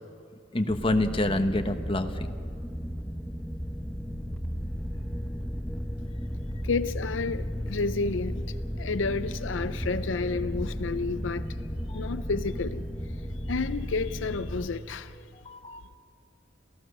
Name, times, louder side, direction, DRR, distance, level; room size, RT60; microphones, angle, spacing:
voice 1, 0.5-2.3 11.9-12.0 15.4-16.0, left 1 dB, 30° left, 1.2 m, -27 dB
sound 1, 0.7-14.7, equal, 5° left, 1.0 m, -34 dB
voice 2, 6.6-8.5 8.8-11.5 11.9-12.9 13.5-15.2, left 4 dB, 80° left, 0.6 m, -30 dB
27.5 x 16.0 x 6.7 m
head